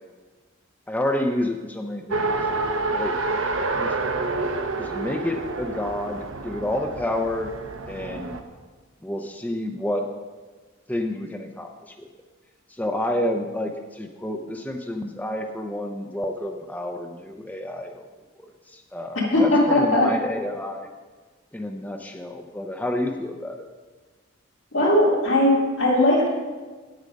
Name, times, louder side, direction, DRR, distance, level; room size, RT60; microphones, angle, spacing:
voice 1, 0.9-2.5 2.9-3.1 3.7-3.9 4.8-7.5 7.9-8.4 9.0-10.1 10.9-11.7 12.8-18.0 18.7-20.9 21.5-23.7, left 1 dB, 10° left, 4 dB, 0.5 m, -29 dB
Race car auto racing, 2.1-8.4, right 3 dB, 85° right, 0.9 m, -28 dB
voice 2, 19.3-20.1 24.7-26.3, left 1 dB, 80° left, -3 dB, 2.6 m, -19 dB
8.8 x 8.3 x 5.2 m, 1.4 s
head